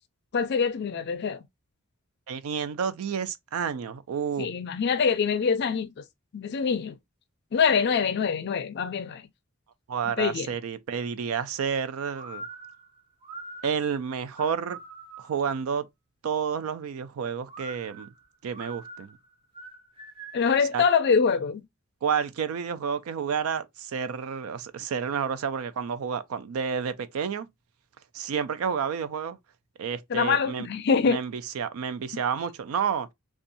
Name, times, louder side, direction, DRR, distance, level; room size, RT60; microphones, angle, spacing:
voice 1, 0.3-1.4 4.4-6.0 6.3-7.0 7.5-9.3 10.2-10.5 20.3-21.6 30.1-31.2, left 6 dB, 55° left, 0.4 m, -24 dB
voice 2, 2.3-4.5 9.9-12.4 13.6-14.8 15.2-15.9 16.2-18.1 18.4-19.2 20.7-20.8 22.0-27.5 28.1-29.4 29.8-30.7 31.0-33.1, right 7 dB, 90° right, 0.4 m, -30 dB
sound 1, 12.1-15.5 17.5-20.6, right 3 dB, 25° right, 0.6 m, -44 dB
2.6 x 2.3 x 2.6 m
head